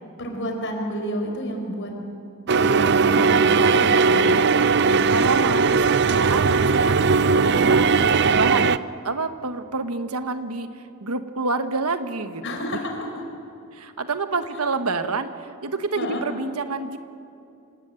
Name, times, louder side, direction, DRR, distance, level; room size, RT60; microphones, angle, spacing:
voice 1, 0.2-1.9 2.5-4.4 12.4-13.2 16.0-16.2, equal, 55° left, 2 dB, 5.3 m, -30 dB
sound 1, 2.5-8.8, right 4 dB, 50° right, 0.5 m, -18 dB
voice 2, 5.0-7.9 8.3-10.7 11.0-12.6 13.7-17.0, right 3 dB, 85° right, 9 dB, 1.4 m, -28 dB
26.5 x 18.5 x 8.9 m, 2.6 s
head